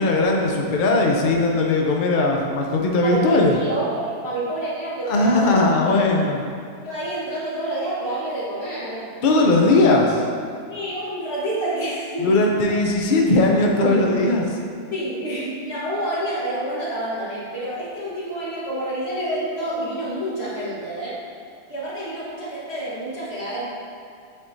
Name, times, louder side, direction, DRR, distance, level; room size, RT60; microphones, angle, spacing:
voice 1, 0.0-3.6 5.1-6.4 9.2-10.2 12.2-14.6, left 2 dB, 75° left, 0 dB, 0.4 m, -18 dB
voice 2, 3.0-5.7 6.8-9.1 10.7-12.4 14.9-21.2 21.7-23.7, right 1 dB, 45° left, -8 dB, 1.6 m, -28 dB
8.6 x 4.3 x 2.7 m, 2.3 s
omnidirectional pair, 1.6 m